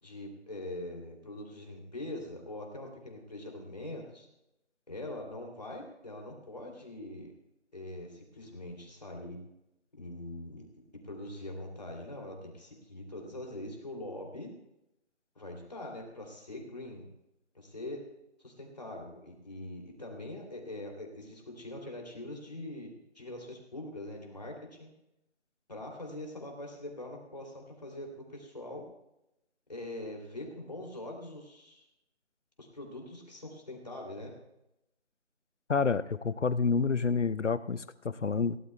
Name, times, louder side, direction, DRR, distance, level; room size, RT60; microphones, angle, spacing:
voice 1, 0.0-4.3 4.9-7.3 7.7-9.4 10.0-10.6 11.0-14.5 15.3-17.0 17.5-18.0 18.4-24.9 25.7-28.9 29.7-31.9 32.6-34.3, left 1 dB, 35° left, 1 dB, 2.9 m, -43 dB
voice 2, 35.7-38.6, left 5 dB, 85° left, 15 dB, 0.8 m, -28 dB
22.5 x 16.5 x 2.3 m, 0.86 s
figure-of-eight pair, 175°, 35 cm